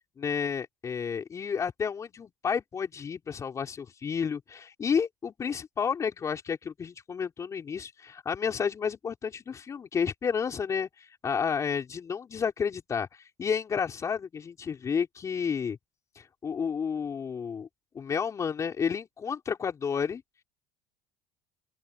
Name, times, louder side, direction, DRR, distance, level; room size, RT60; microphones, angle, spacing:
voice 1, 0.2-10.9 11.2-13.1 13.4-15.8 16.2-17.7 17.9-20.2, left 6 dB, 30° left, 4.5 m, -31 dB
open air
supercardioid pair, 95°, 10 cm